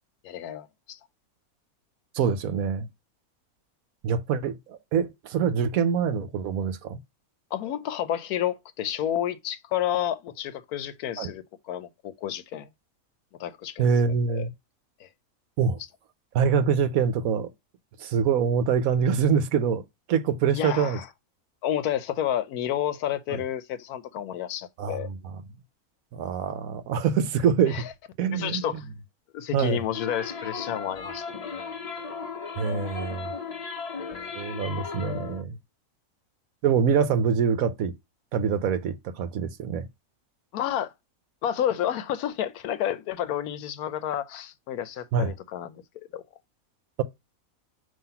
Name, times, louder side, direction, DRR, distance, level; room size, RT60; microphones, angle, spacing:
voice 1, 0.2-1.0 7.5-12.7 13.4-13.9 14.3-14.4 15.0-15.1 20.5-21.1 21.6-25.1 27.7-27.8 28.3-28.8 29.3-31.4 40.5-40.9 41.4-45.8 46.1-46.2, left 10 dB, 85° left, 1.2 m, -30 dB
voice 2, 2.1-2.9 4.0-7.0 11.2-11.3 13.8-14.5 15.6-15.8 16.3-17.5 18.0-19.8 20.1-21.0 23.3-23.4 24.8-25.1 26.1-27.8 28.2-28.6 29.5-29.8 32.6-33.3 34.3-35.6 36.6-37.9 38.3-39.9 45.1-45.3, right 6 dB, 75° right, 1.1 m, -25 dB
sound 1, 29.9-35.4, left 5 dB, 45° left, 0.5 m, -36 dB
5.7 x 3.0 x 5.5 m
omnidirectional pair, 1.5 m